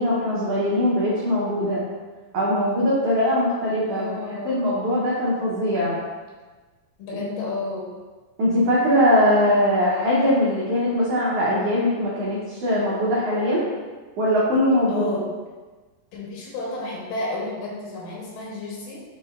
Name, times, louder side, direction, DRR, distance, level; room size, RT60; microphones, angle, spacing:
voice 1, 0.0-1.8 2.3-6.0 8.4-13.6 14.2-15.1, equal, 85° right, -8 dB, 1.4 m, -21 dB
voice 2, 3.9-4.6 7.0-7.9 14.9-15.2 16.1-19.0, left 2 dB, 80° left, -3 dB, 2.6 m, -31 dB
6.7 x 3.2 x 2.3 m, 1.3 s
omnidirectional pair, 4.0 m